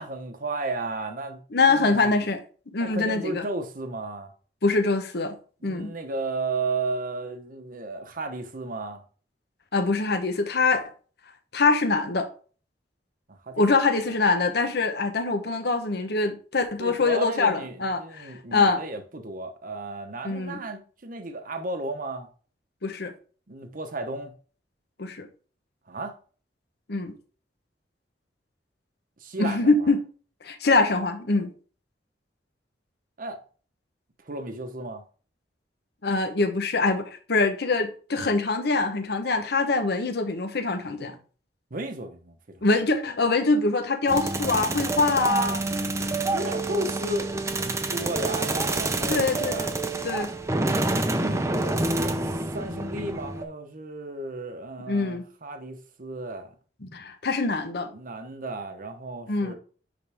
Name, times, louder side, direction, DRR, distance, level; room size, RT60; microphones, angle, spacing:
voice 1, 0.0-1.4 1.7-2.3 2.8-4.3 5.6-9.0 13.3-13.6 14.1-14.2 16.8-22.3 23.5-24.3 25.9-26.2 29.2-29.9 33.2-33.4 34.2-35.0 41.7-42.6 46.2-47.3 47.6-49.7 51.1-52.2 52.5-56.5 57.9-59.5, right 2 dB, 50° right, 1.0 m, -34 dB
voice 2, 1.5-2.4 2.7-3.5 4.6-5.3 5.6-5.9 9.7-10.8 11.5-12.3 13.6-18.8 20.2-20.6 22.8-23.1 25.0-25.3 26.9-27.1 29.4-30.0 30.4-31.5 36.0-41.1 42.6-45.6 49.1-50.3 54.9-55.2 56.8-57.9 59.3-59.5, left 3 dB, 65° left, 1.0 m, -24 dB
sound 1, 44.1-53.4, right 2 dB, 15° right, 0.7 m, -27 dB
10.0 x 3.8 x 3.5 m
head